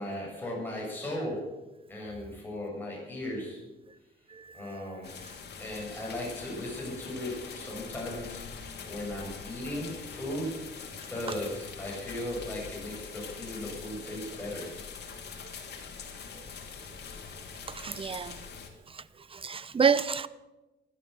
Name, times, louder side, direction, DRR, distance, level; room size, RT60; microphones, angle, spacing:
voice 1, 0.0-1.4 1.9-3.6 4.5-5.1 5.6-8.4 8.8-10.5 11.0-14.6, left 1 dB, 10° left, 7.3 m, -37 dB
voice 2, 4.3-4.8 17.7-18.4 18.9-20.3, right 6 dB, 25° right, 0.7 m, -29 dB
sound 1, 5.0-18.7, left 6 dB, 55° left, 2.9 m, -43 dB
16.0 x 12.0 x 7.0 m
cardioid pair, 90°, 20 cm